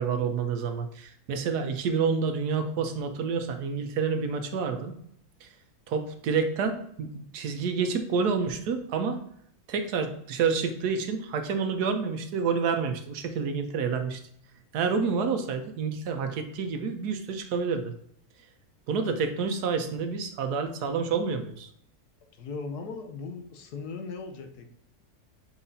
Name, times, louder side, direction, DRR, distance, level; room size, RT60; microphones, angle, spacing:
voice 1, 0.0-4.9 5.4-5.5 5.9-9.2 9.7-14.2 14.7-17.9 18.9-21.7, right 5 dB, 85° right, 6 dB, 1.4 m, -28 dB
voice 2, 22.3-24.7, left 4 dB, 90° left, 5 dB, 1.4 m, -38 dB
7.3 x 4.9 x 2.7 m, 0.70 s
omnidirectional pair, 1.6 m